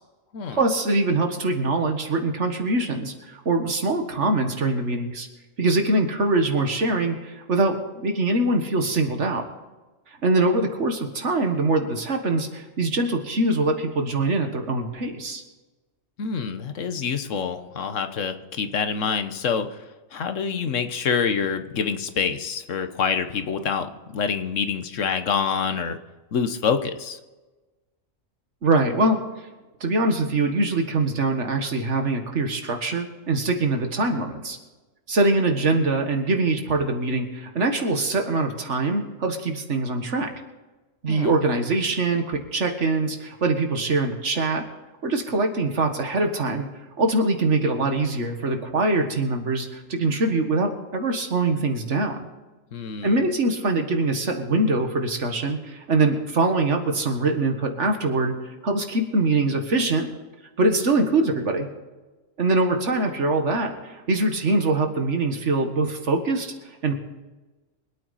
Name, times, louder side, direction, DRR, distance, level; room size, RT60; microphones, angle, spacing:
voice 1, 0.5-5.3 5.6-9.4 10.2-15.4 28.6-29.2 29.8-34.6 35.1-40.3 41.0-44.7 45.0-46.7 47.0-52.2 53.0-58.4 58.6-60.1 60.6-61.7 62.4-66.5 66.8-66.9, right 2 dB, 65° right, 5 dB, 1.9 m, -23 dB
voice 2, 16.2-19.8 20.1-26.0 26.3-27.2 41.1-41.3 52.7-53.2, left 6 dB, 75° left, 9 dB, 1.4 m, -26 dB
24.0 x 8.9 x 4.2 m, 1.2 s
omnidirectional pair, 1.3 m